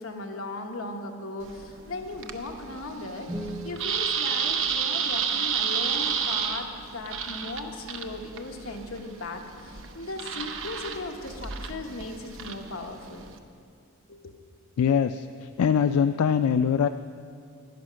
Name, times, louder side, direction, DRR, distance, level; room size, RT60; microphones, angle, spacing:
voice 1, 0.0-13.2 14.1-14.4, left 2 dB, 60° left, 3 dB, 1.1 m, -37 dB
sound 1, 1.4-13.4, right 7 dB, 60° right, 0.7 m, -32 dB
sound 2, 3.3-5.4, right 1 dB, 10° right, 0.8 m, -40 dB
voice 2, 14.8-16.9, left 7 dB, 80° left, 10 dB, 0.3 m, -23 dB
10.5 x 9.9 x 6.3 m, 2.3 s
head